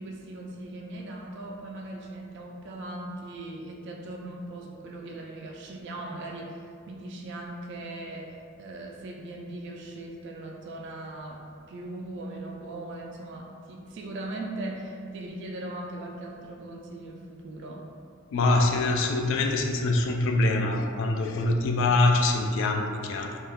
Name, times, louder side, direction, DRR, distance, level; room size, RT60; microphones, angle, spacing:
voice 1, 0.0-17.9, right 2 dB, 60° right, 0 dB, 0.3 m, -39 dB
voice 2, 18.3-23.4, left 2 dB, 65° left, 3 dB, 0.3 m, -24 dB
2.3 x 2.2 x 3.4 m, 2.2 s
head